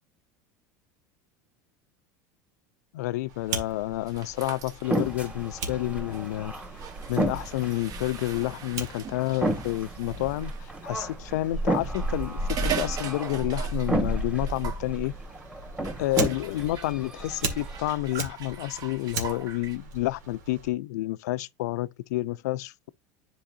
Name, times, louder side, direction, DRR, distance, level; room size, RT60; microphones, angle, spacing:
voice 1, 2.9-6.5 7.1-15.1 16.0-22.9, left 17 dB, 85° left, 0.4 m, -29 dB
Fire, 3.3-20.7, right 2 dB, 90° right, 1.8 m, -36 dB
sound 1, 4.1-10.7 11.7-14.1 14.4-14.9 15.8-19.8, right 8 dB, 45° right, 1.0 m, -40 dB
sound 2, 4.8-17.9, right 2 dB, 15° right, 1.7 m, -34 dB
10.0 x 4.6 x 2.5 m
supercardioid pair, 110°, 9 cm